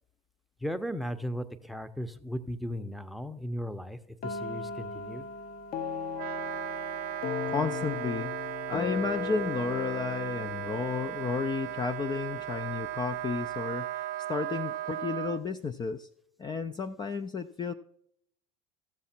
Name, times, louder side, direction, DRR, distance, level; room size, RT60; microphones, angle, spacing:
voice 1, 0.6-5.3, equal, ahead, 9 dB, 0.8 m, -36 dB
sound 1, 4.2-11.9, left 6 dB, 45° left, 1.0 m, -37 dB
Wind instrument woodwind instrument, 6.1-15.4, right 14 dB, 50° right, 0.6 m, -36 dB
voice 2, 7.5-8.3 8.7-16.1 16.4-17.7, left 5 dB, 20° left, 8 dB, 0.5 m, -32 dB
14.5 x 7.2 x 4.4 m, 0.71 s
hypercardioid pair, 75°, 20 cm